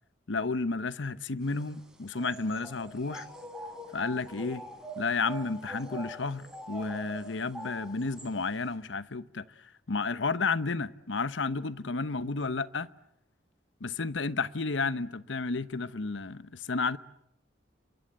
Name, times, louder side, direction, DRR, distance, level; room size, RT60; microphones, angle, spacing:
voice 1, 0.3-3.3 3.9-4.6 5.0-12.9 13.8-17.0, left 4 dB, 85° left, 0.9 m, -32 dB
sound 1, 1.4-8.7, right 1 dB, 5° right, 4.5 m, -44 dB
29.0 x 23.5 x 8.0 m
head